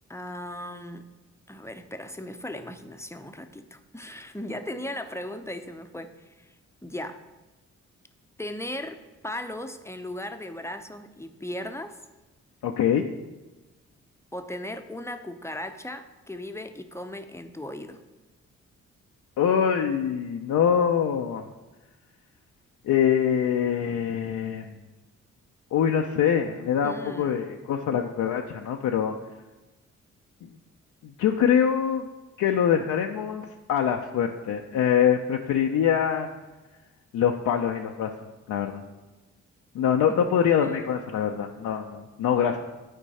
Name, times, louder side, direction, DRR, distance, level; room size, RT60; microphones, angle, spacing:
voice 1, 0.1-1.0 1.5-6.5 6.8-7.2 8.4-12.0 14.3-18.0 26.8-27.4 40.1-40.2 40.6-40.7, left 1 dB, 10° left, 7 dB, 0.7 m, -37 dB
voice 2, 12.6-13.1 19.4-21.5 22.8-24.7 25.7-29.1 31.0-32.1 32.4-36.3 37.1-38.1 38.5-38.8 39.7-42.6, left 8 dB, 60° left, 2 dB, 0.6 m, -24 dB
10.0 x 4.5 x 4.2 m, 1.1 s
hypercardioid pair, 40°, 34 cm